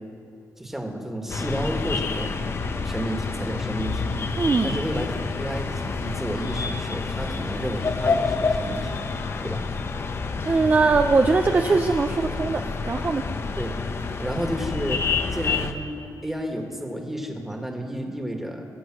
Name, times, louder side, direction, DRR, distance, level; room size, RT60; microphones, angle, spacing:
voice 1, 0.6-2.4 2.8-4.1 4.6-9.0 9.4-9.6 13.6-13.8 14.2-15.0 15.3-18.6, right 1 dB, 5° right, 2 dB, 1.7 m, -31 dB
sound 1, 1.3-15.7, left 4 dB, 35° left, 0.8 m, -28 dB
voice 2, 4.4-4.8 10.4-13.2, right 4 dB, 25° right, 6 dB, 0.5 m, -21 dB
22.5 x 7.8 x 6.1 m, 2.6 s
cardioid pair, 130°, 7 cm